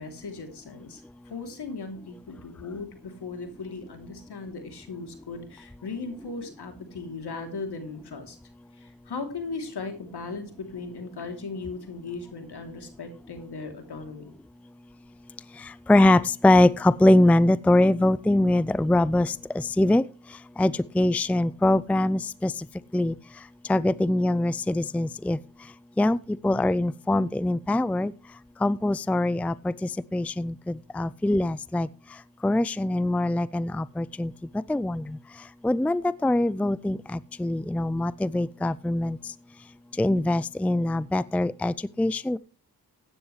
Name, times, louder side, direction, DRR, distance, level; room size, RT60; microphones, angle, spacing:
voice 1, 0.0-8.4 8.7-14.3, left 4 dB, 70° left, 6 dB, 3.2 m, -37 dB
voice 2, 15.9-20.0 20.6-22.5 22.9-23.1 23.7-25.4 26.0-26.2 26.4-28.1 28.6-31.9 32.4-34.3 34.7-35.2 35.6-39.2 40.0-42.4, left 1 dB, 5° left, 19 dB, 0.4 m, -23 dB
15.5 x 9.8 x 3.2 m, 0.33 s
cardioid pair, 50°, 41 cm